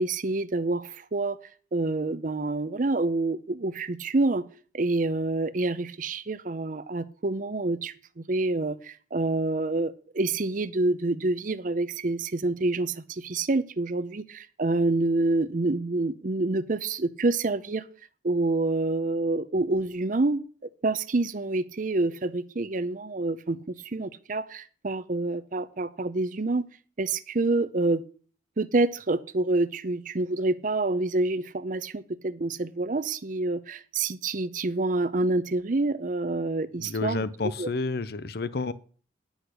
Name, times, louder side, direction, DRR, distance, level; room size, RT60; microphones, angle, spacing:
voice 1, 0.0-1.4 1.7-4.4 4.7-17.8 18.2-20.5 20.8-26.7 27.0-28.0 28.6-37.2 37.6-37.7, right 2 dB, 45° right, 0.6 m, -27 dB
voice 2, 36.8-38.7, left 3 dB, 55° left, 0.6 m, -30 dB
9.9 x 6.4 x 6.4 m
head